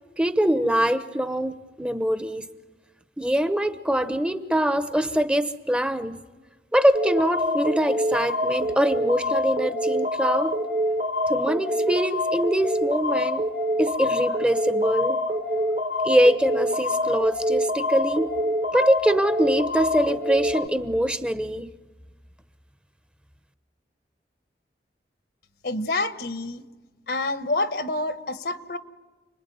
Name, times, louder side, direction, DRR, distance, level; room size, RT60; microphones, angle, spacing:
voice 1, 0.2-2.4 3.2-6.2 6.7-10.6 11.3-13.4 13.8-15.2 16.0-18.3 18.7-21.7, equal, 5° right, 11 dB, 0.9 m, -23 dB
sound 1, 6.9-20.7, left 1 dB, 40° right, 1.2 m, -26 dB
voice 2, 25.6-26.6 27.1-28.8, left 2 dB, 65° left, 11 dB, 1.2 m, -27 dB
30.0 x 21.0 x 9.4 m, 1.3 s
head